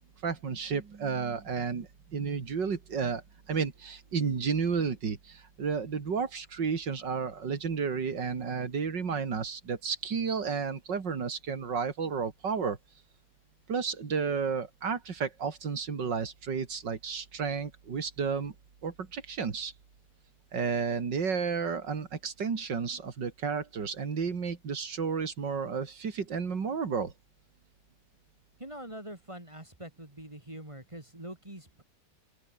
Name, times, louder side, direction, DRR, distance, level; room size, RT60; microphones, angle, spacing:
voice 1, 0.2-12.8 13.7-18.5 18.8-19.7 20.5-27.1, right 5 dB, 90° right, 3.1 m, -32 dB
voice 2, 28.6-31.8, right 1 dB, 15° right, 2.7 m, -44 dB
open air
omnidirectional pair, 1.9 m